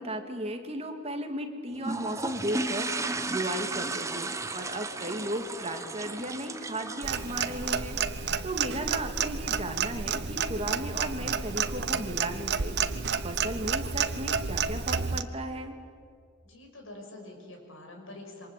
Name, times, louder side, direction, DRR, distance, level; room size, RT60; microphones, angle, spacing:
voice 1, 0.0-12.8 13.2-15.8, right 1 dB, 30° right, 5 dB, 2.1 m, -35 dB
sound 1, 1.8-8.4, right 3 dB, 15° right, 1.0 m, -35 dB
Clock, 7.0-15.2, right 6 dB, 55° right, 1.0 m, -30 dB
voice 2, 16.4-18.5, left 2 dB, 80° left, 2 dB, 6.1 m, -46 dB
27.5 x 24.5 x 8.4 m, 2.2 s
head